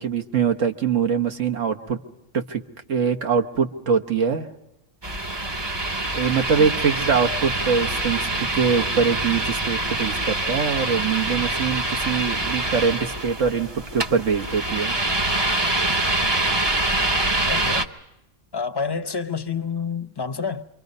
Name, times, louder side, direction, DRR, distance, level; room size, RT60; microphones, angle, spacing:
voice 1, 0.0-2.0 2.3-2.6 2.9-4.5 6.1-14.9, right 6 dB, 75° right, 1.6 m, -23 dB
sound 1, 5.0-17.8, right 2 dB, 25° right, 0.7 m, -25 dB
voice 2, 17.5-17.9 18.5-20.6, left 5 dB, 25° left, 0.7 m, -28 dB
28.0 x 24.0 x 5.4 m
omnidirectional pair, 1.3 m